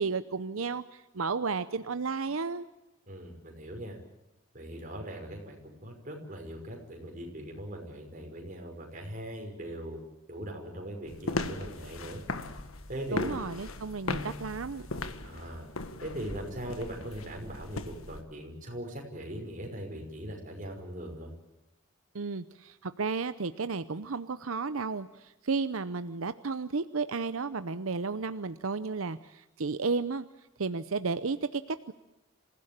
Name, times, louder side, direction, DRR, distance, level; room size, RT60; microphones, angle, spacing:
voice 1, 0.0-2.7 13.1-14.9 22.1-30.2 30.6-31.9, right 4 dB, 85° right, 12 dB, 0.8 m, -33 dB
voice 2, 3.1-4.0 4.5-10.0 10.3-12.2 12.9-13.3 15.2-15.7 16.0-21.3, right 1 dB, 40° right, 2 dB, 5.6 m, -40 dB
sound 1, 11.1-18.2, left 2 dB, 90° left, 1.7 m, -38 dB
27.0 x 16.5 x 8.9 m, 0.97 s
head